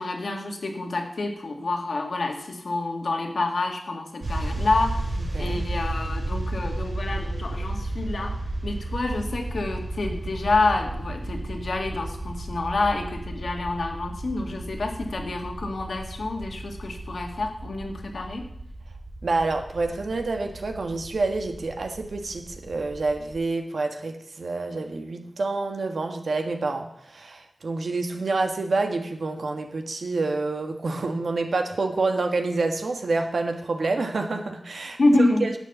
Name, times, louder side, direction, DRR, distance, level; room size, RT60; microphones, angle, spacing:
voice 1, 0.0-8.3 8.6-18.4 35.0-35.5, left 2 dB, 80° left, 3 dB, 2.0 m, -27 dB
sound 1, 4.2-23.4, right 2 dB, 65° right, 2.9 m, -33 dB
voice 2, 5.2-5.6 19.2-35.6, right 3 dB, 85° right, 5 dB, 1.4 m, -28 dB
11.5 x 6.6 x 8.0 m, 0.75 s
wide cardioid pair, 85°, 0 cm